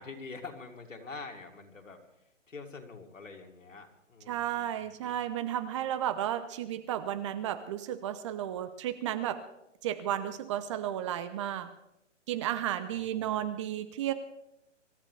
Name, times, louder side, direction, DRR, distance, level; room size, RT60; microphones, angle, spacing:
voice 1, 0.0-2.0 2.5-5.1 12.9-13.4, left 4 dB, 85° left, 3 dB, 3.0 m, -46 dB
voice 2, 4.3-9.4 9.8-11.7 12.3-14.1, right 11 dB, 25° right, 11 dB, 0.8 m, -33 dB
26.0 x 13.5 x 3.4 m, 0.84 s
hypercardioid pair, 145°, 37 cm